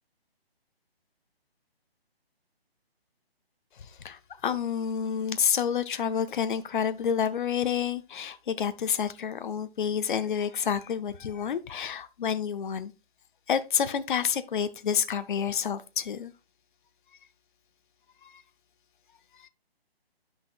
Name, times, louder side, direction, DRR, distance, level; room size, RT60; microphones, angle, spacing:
voice 1, 3.8-12.9 13.5-16.3 18.2-18.4 19.4-19.5, left 8 dB, 50° left, 0.7 m, -29 dB
9.9 x 5.9 x 2.4 m
figure-of-eight pair, 150°, 31 cm